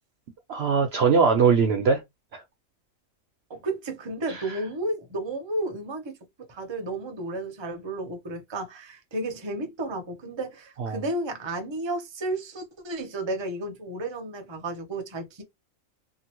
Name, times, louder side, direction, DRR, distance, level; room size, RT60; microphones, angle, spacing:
voice 1, 0.5-2.0 2.3-2.4 4.3-4.6 10.8-11.0, right 5 dB, 65° right, 0.7 m, -21 dB
voice 2, 3.5-6.2 6.5-15.4, right 2 dB, 30° right, 0.6 m, -32 dB
2.8 x 2.5 x 2.9 m
omnidirectional pair, 1.4 m